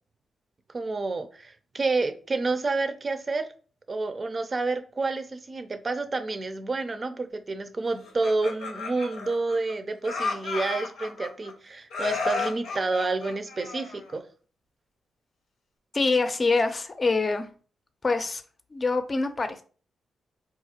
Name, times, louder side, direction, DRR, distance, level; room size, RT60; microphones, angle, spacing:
voice 1, 0.7-3.5 3.9-14.2, right 3 dB, 40° right, 8 dB, 0.5 m, -29 dB
Laughter, 8.0-9.7 10.0-11.5 11.9-14.2, left 4 dB, 80° left, 0.7 m, -33 dB
voice 2, 15.9-17.5 18.0-18.4 18.7-19.6, left 3 dB, 40° left, 8 dB, 0.5 m, -25 dB
3.8 x 2.5 x 2.8 m, 0.40 s
supercardioid pair, 45°, 0 cm